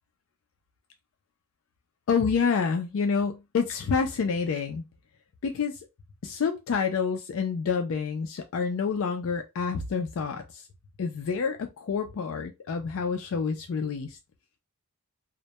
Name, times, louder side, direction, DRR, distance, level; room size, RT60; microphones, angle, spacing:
voice 1, 2.1-4.8 5.4-5.8 6.2-10.7 11.0-14.2, left 5 dB, 60° left, 0.3 m, -28 dB
2.1 x 2.1 x 2.7 m
head